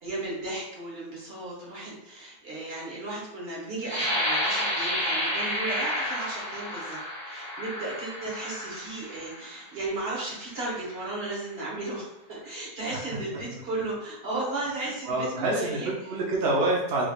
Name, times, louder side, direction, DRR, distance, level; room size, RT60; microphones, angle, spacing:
voice 1, 0.0-15.9, right 2 dB, 40° right, -5 dB, 1.3 m, -35 dB
sound 1, 3.8-9.5 10.2-10.3 10.8-11.2, equal, 30° left, 1.5 m, -30 dB
voice 2, 15.0-17.1, right 2 dB, 75° right, -2 dB, 0.5 m, -27 dB
3.8 x 3.2 x 2.3 m, 0.88 s
omnidirectional pair, 1.9 m